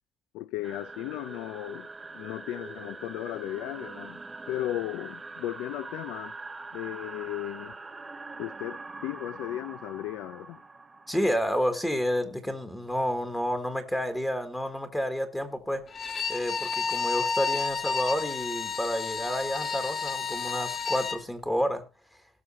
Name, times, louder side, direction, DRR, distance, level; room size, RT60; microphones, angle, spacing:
voice 1, 0.3-1.9 2.1-4.2 4.5-6.3 6.7-7.8 8.4-10.6, left 15 dB, 90° left, 0.5 m, -35 dB
sound 1, 0.6-11.9, right 3 dB, 15° right, 0.8 m, -43 dB
voice 2, 11.1-15.8 16.3-21.8, equal, 5° left, 1.3 m, -30 dB
Bowed string instrument, 15.9-21.2, left 5 dB, 30° left, 0.8 m, -31 dB
17.5 x 6.4 x 4.2 m
cardioid pair, 160°, 0 cm